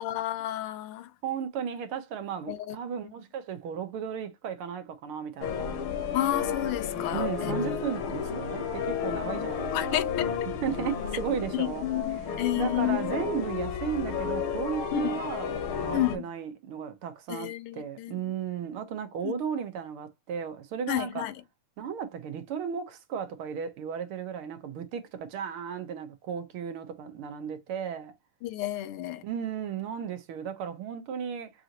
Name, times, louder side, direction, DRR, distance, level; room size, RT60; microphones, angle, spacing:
voice 1, 0.0-1.1 2.5-2.8 6.1-7.5 9.7-10.4 11.5-13.0 14.9-15.2 15.9-16.3 17.3-18.2 19.2-19.3 20.9-21.3 28.4-29.2, left 14 dB, 90° left, 1.7 m, -31 dB
voice 2, 1.2-5.8 7.1-10.1 10.6-11.9 12.6-15.5 15.8-21.3 21.8-28.1 29.2-31.5, right 7 dB, 75° right, 1.9 m, -35 dB
sound 1, 5.4-16.2, left 7 dB, 70° left, 1.9 m, -32 dB
6.2 x 2.5 x 2.9 m
omnidirectional pair, 2.4 m